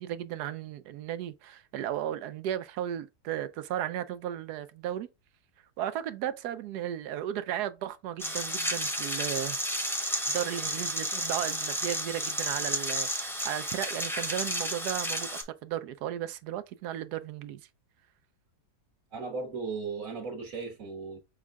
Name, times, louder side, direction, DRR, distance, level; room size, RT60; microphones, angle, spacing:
voice 1, 0.0-5.1 5.8-9.6 10.3-17.7, right 11 dB, 80° right, 1.1 m, -35 dB
sound 1, 8.2-15.4, equal, ahead, 0.7 m, -32 dB
voice 2, 19.1-21.2, right 4 dB, 55° right, 1.6 m, -36 dB
6.3 x 2.4 x 3.4 m
omnidirectional pair, 1.7 m